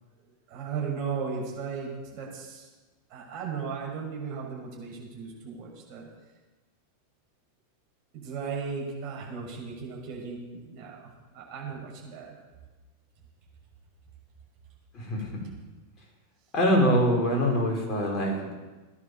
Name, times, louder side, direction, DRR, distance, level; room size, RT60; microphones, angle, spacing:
voice 1, 0.5-2.7 3.1-6.1 8.1-12.3, right 5 dB, 40° right, -2 dB, 6.6 m, -36 dB
voice 2, 14.9-15.5 16.5-18.5, equal, 25° left, -1 dB, 5.4 m, -24 dB
18.0 x 10.5 x 7.1 m, 1.2 s
figure-of-eight pair, 90°, 0 cm